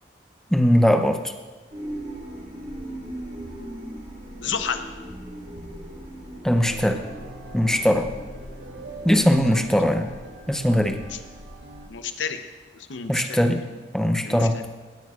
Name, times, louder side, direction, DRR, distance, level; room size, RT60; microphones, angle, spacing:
voice 1, 0.5-1.3 6.4-7.0 7.5-8.1 9.0-10.2 10.5-11.0 13.1-13.6 13.9-14.6, equal, 5° left, 6 dB, 0.6 m, -20 dB
sound 1, 1.7-11.9, equal, 40° right, 3.8 m, -39 dB
voice 2, 4.4-4.8 9.1-9.3 11.1-11.2 11.9-12.4 12.7-13.4 14.2-14.6, left 6 dB, 90° left, 8 dB, 0.7 m, -31 dB
sound 2, 6.6-11.9, right 3 dB, 85° right, 1.0 m, -44 dB
17.5 x 9.1 x 2.4 m, 1.3 s
head